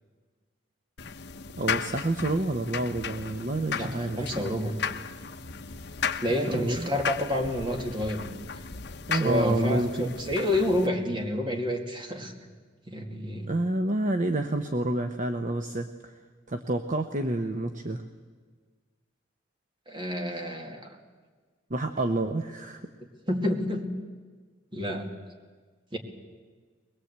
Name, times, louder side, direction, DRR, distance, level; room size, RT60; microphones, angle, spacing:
sound 1, 1.0-10.9, left 6 dB, 65° left, 1.0 m, -35 dB
voice 1, 1.6-4.2 6.5-6.9 9.1-10.1 13.5-16.1 16.5-18.0 21.7-22.8, right 2 dB, 45° right, 6 dB, 1.0 m, -28 dB
voice 2, 3.7-4.7 6.2-8.4 9.1-12.5 12.9-13.5 19.9-21.0 23.3-23.8 24.7-25.1 25.9-26.0, left 1 dB, 25° right, 3 dB, 2.3 m, -29 dB
22.0 x 21.0 x 8.2 m, 1.5 s
head